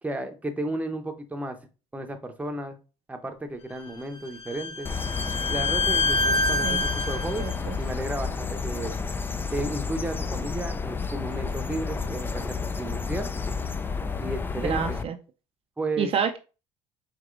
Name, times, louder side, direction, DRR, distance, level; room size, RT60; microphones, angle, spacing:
voice 1, 0.0-1.6 1.9-2.8 3.1-4.9 5.5-7.5 7.8-9.0 9.5-13.3 14.2-15.0 15.8-16.1, right 2 dB, 10° right, 5 dB, 0.8 m, -33 dB
Bowed string instrument, 3.7-7.5, left 2 dB, 45° left, 1.2 m, -27 dB
sound 1, 4.8-15.0, left 5 dB, 15° left, 0.3 m, -31 dB
voice 2, 7.4-7.8 14.7-15.1 16.0-16.4, right 7 dB, 45° right, 5 dB, 0.5 m, -28 dB
4.8 x 2.9 x 2.5 m, 0.32 s
supercardioid pair, 90°, 13 cm